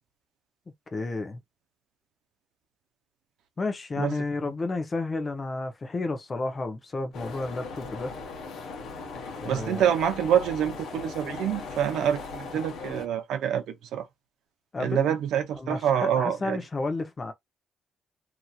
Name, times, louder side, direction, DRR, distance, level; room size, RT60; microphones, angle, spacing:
voice 1, 0.9-1.4 3.6-8.2 9.4-9.8 14.7-15.1 15.6-17.3, left 3 dB, 30° left, 0.8 m, -31 dB
sound 1, 7.1-13.1, left 4 dB, 75° left, 1.2 m, -38 dB
voice 2, 9.5-14.1 14.8-16.6, right 9 dB, 85° right, 0.6 m, -26 dB
3.0 x 2.7 x 2.3 m
cardioid pair, 90°, 0 cm